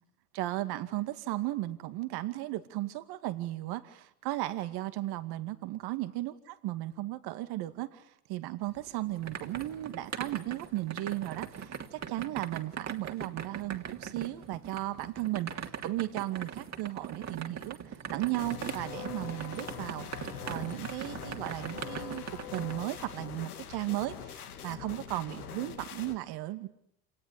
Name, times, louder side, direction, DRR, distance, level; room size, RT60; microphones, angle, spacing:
voice 1, 0.3-15.5 15.8-17.8 18.1-22.2 22.5-26.7, right 16 dB, 60° right, 11 dB, 2.3 m, -35 dB
sound 1, 8.7-22.7, right 7 dB, 35° right, 3.0 m, -41 dB
sound 2, 18.4-26.1, left 8 dB, 85° left, 2.8 m, -43 dB
28.5 x 19.5 x 9.8 m, 0.75 s
hypercardioid pair, 70°, 44 cm